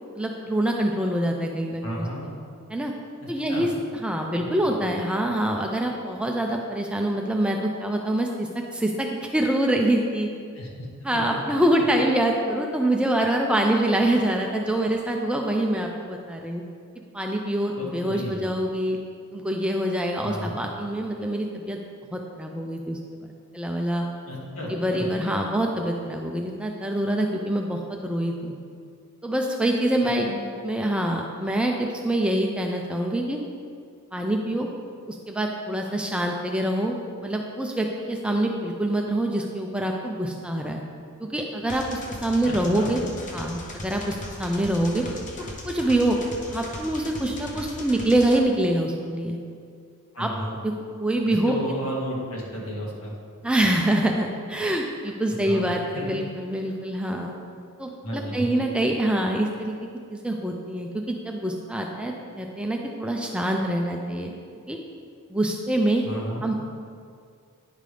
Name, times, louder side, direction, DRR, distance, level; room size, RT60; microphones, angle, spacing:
voice 1, 0.2-2.1 2.7-2.9 3.3-3.7 4.0-10.3 11.0-16.6 17.1-19.0 19.3-21.8 22.1-23.3 23.5-24.1 24.7-28.5 29.2-30.3 30.6-33.4 34.1-34.7 35.1-37.0 37.2-40.8 41.2-43.0 43.3-45.0 45.6-46.2 46.5-49.4 50.2-50.3 50.6-50.7 51.0-51.6 53.4-57.3 57.8-59.7 60.1-64.3 64.7-64.8 65.3-66.0 66.4-66.5, right 1 dB, 5° right, 1 dB, 0.4 m, -25 dB
voice 2, 1.8-2.3 3.2-3.7 4.4-4.5 4.7-4.9 10.5-10.9 11.1-11.2 17.8-18.4 20.2-20.6 24.3-25.1 30.3-30.4 42.4-42.9 50.1-50.5 51.3-53.2 55.4-55.7 55.9-56.1 58.0-58.7 66.0-66.5, equal, 65° left, -3 dB, 1.6 m, -33 dB
sound 1, 41.7-48.4, left 1 dB, 35° left, 0.7 m, -38 dB
10.0 x 5.3 x 3.3 m, 2.2 s
head